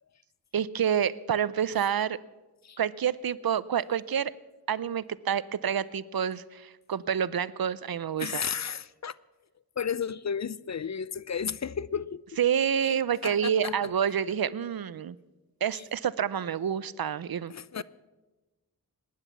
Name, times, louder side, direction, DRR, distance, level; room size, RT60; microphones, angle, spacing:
voice 1, 0.5-2.2 2.8-4.3 4.7-8.4 12.4-15.2 15.6-17.5, right 8 dB, 70° right, 0.6 m, -28 dB
voice 2, 8.2-9.2 9.8-12.2 12.8-12.9 13.2-13.9 15.7-15.8 17.5-17.8, left 7 dB, 50° left, 0.5 m, -33 dB
19.0 x 10.0 x 7.2 m
wide cardioid pair, 50°, 37 cm